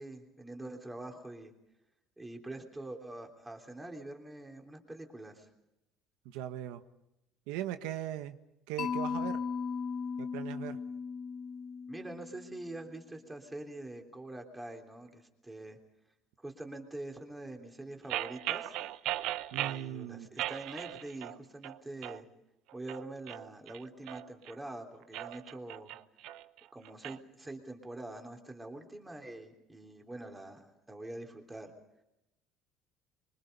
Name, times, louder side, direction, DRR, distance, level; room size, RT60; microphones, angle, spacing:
voice 1, 0.0-1.5 2.2-5.5 11.9-15.8 16.4-18.7 19.5-22.2 22.7-25.9 26.7-31.7, right 2 dB, 10° right, 3 dB, 3.4 m, -45 dB
voice 2, 6.2-6.8 7.5-8.4 8.7-9.4 10.2-10.8 19.5-20.3, right 12 dB, 90° right, 9 dB, 1.4 m, -39 dB
Mallet percussion, 8.8-12.8, left 6 dB, 40° left, 1.1 m, -37 dB
sound 1, 18.1-19.9 20.4-21.4 21.6-22.2 22.7-24.5 25.0-27.2, right 14 dB, 65° right, 0.8 m, -38 dB
25.5 x 25.0 x 5.4 m, 0.88 s
cardioid pair, 160°, 0 cm